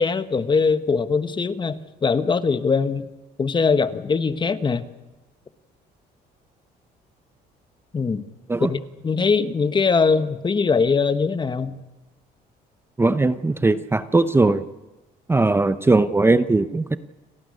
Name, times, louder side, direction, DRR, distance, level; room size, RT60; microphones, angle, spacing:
voice 1, 0.0-3.1 3.4-4.8 7.9-8.2 8.6-11.8, left 5 dB, 25° left, 11 dB, 1.2 m, -21 dB
voice 2, 13.0-14.6 15.3-17.0, right 3 dB, 15° right, 12 dB, 0.7 m, -19 dB
29.0 x 13.0 x 9.7 m, 1.1 s
cardioid pair, 110°, 17 cm